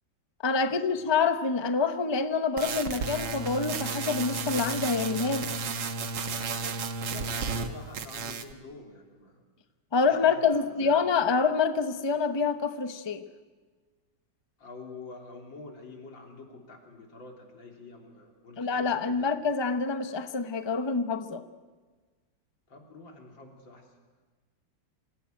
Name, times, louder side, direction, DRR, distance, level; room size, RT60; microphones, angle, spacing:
voice 1, 0.4-5.5 9.9-13.2 18.6-21.4, left 5 dB, 20° left, 0.7 m, -26 dB
sound 1, 2.6-7.7 7.9-8.5, right 4 dB, 70° right, 2.0 m, -33 dB
voice 2, 7.1-9.4 10.0-11.0 14.6-19.4 22.7-23.9, left 3 dB, 90° left, 4.2 m, -47 dB
26.5 x 16.5 x 9.3 m
omnidirectional pair, 2.0 m